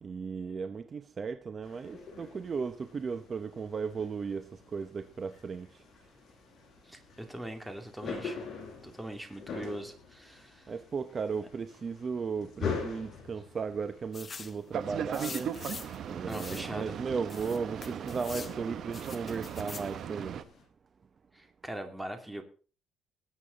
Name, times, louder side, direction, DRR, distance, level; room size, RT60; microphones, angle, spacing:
voice 1, 0.0-5.7 10.7-15.6 16.1-20.4, right 5 dB, 35° right, 0.8 m, -36 dB
sound 1, 1.6-20.6, left 5 dB, 50° left, 6.7 m, -45 dB
voice 2, 6.8-8.4 8.8-10.7 16.3-17.0 21.3-22.4, right 1 dB, 5° right, 2.5 m, -41 dB
sound 2, 14.1-14.6 15.1-16.0 16.3-16.7 17.3-18.5 18.9-19.9, left 5 dB, 30° left, 1.2 m, -44 dB
Boat Water vehicle, 14.7-20.4, right 8 dB, 55° right, 1.1 m, -38 dB
20.5 x 8.4 x 4.0 m
cardioid pair, 125°, 0 cm